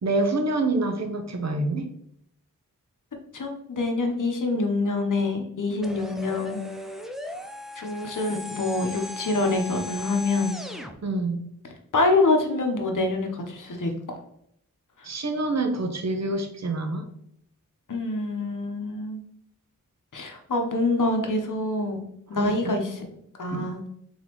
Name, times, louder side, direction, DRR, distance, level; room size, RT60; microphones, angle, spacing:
voice 1, 0.0-1.9 11.0-11.4 15.0-17.0 22.3-22.8 23.5-23.7, right 2 dB, 50° right, 5 dB, 0.8 m, -27 dB
voice 2, 3.3-6.6 7.8-10.6 11.9-14.2 17.9-19.2 20.1-22.0 22.3-23.0 23.4-23.8, left 2 dB, 65° left, 4 dB, 1.0 m, -26 dB
sound 1, 5.8-10.9, left 1 dB, ahead, 0.5 m, -37 dB
4.0 x 3.9 x 3.0 m, 0.72 s
cardioid pair, 50°, 34 cm